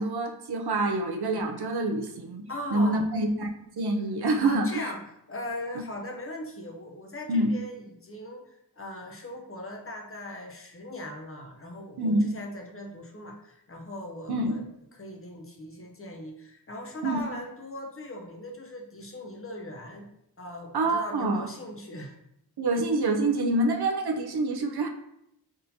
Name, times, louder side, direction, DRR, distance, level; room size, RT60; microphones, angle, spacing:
voice 1, 0.0-3.5 3.8-4.9 7.3-7.5 12.0-12.3 14.3-14.6 17.0-17.2 20.7-21.5 22.6-24.9, right 2 dB, 70° right, 2 dB, 0.6 m, -26 dB
voice 2, 2.5-3.0 4.4-5.0 5.3-14.6 14.9-20.1 20.4-22.2, left 1 dB, 35° left, 0 dB, 0.7 m, -39 dB
4.2 x 3.7 x 2.7 m, 0.77 s
wide cardioid pair, 100°, 40 cm